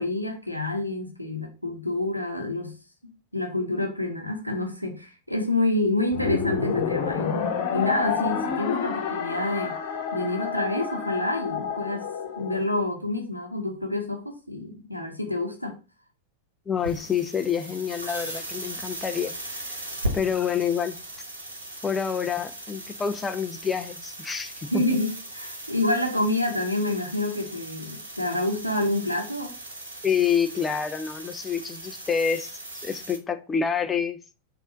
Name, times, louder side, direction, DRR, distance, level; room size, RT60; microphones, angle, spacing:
voice 1, 0.0-2.8 3.0-9.8 10.1-12.1 12.4-15.8 24.7-29.5, left 2 dB, 90° left, 0.8 m, -28 dB
sound 1, 6.1-12.6, left 6 dB, 45° left, 0.9 m, -29 dB
voice 2, 16.7-19.6 20.1-21.0 21.8-24.8 30.0-34.2, left 7 dB, 15° left, 0.3 m, -27 dB
sound 2, 16.8-33.2, right 1 dB, 75° right, 1.1 m, -38 dB
4.0 x 2.5 x 3.7 m
figure-of-eight pair, 90°, 0 cm